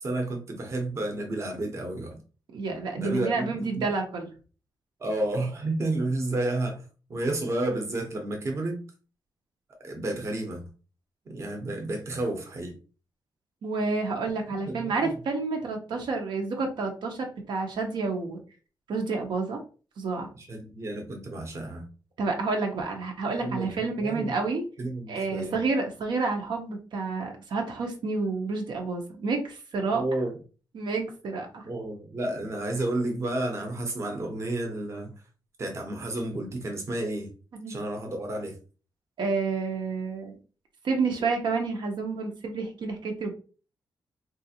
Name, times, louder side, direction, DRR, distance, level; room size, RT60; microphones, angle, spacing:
voice 1, 0.0-2.2 2.7-3.9 5.0-6.8 7.1-8.8 9.8-10.6 11.3-12.8 14.7-15.2 20.4-21.9 23.4-24.4 24.8-25.6 29.9-30.4 31.6-35.1 35.6-37.3 37.7-38.6, right 2 dB, 35° right, 0.8 m, -31 dB
voice 2, 2.5-4.3 13.6-18.4 18.9-19.6 20.0-20.3 22.2-24.6 25.1-30.0 30.7-31.6 37.6-37.7 39.2-40.4 40.8-43.3, right 4 dB, 75° right, 0.8 m, -29 dB
3.8 x 2.4 x 2.7 m
wide cardioid pair, 150°, 8 cm